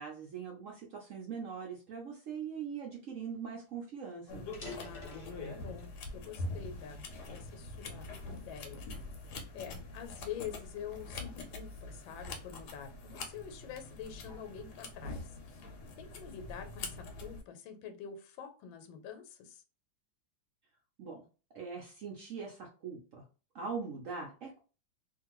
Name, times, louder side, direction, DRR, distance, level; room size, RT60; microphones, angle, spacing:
voice 1, 0.0-4.4 21.0-21.2 21.5-23.2 23.5-24.6, right 6 dB, 80° right, -1 dB, 0.7 m, -42 dB
sound 1, 3.3-3.4 3.7-3.9 4.4-6.0 6.5-7.8 8.4-8.7 9.3-11.3, left 3 dB, 30° left, 0.9 m, -50 dB
sound 2, 4.3-17.4, left 2 dB, 65° left, 1.1 m, -44 dB
voice 2, 4.8-7.0 7.3-8.8 9.5-15.4 16.0-19.6, left 8 dB, 85° left, 7 dB, 1.4 m, -46 dB
2.8 x 2.5 x 2.9 m, 0.35 s
omnidirectional pair, 2.1 m